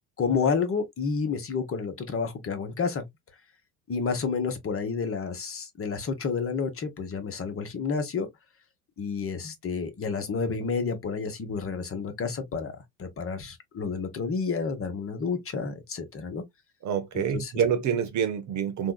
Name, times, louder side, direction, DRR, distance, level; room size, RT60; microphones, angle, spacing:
voice 1, 0.2-3.0 3.9-8.3 9.0-12.7 13.0-16.4 17.3-17.5, left 5 dB, 30° left, 1.1 m, -30 dB
voice 2, 16.8-18.9, right 8 dB, 40° right, 0.7 m, -27 dB
3.5 x 2.7 x 2.3 m
hypercardioid pair, 75°, 46 cm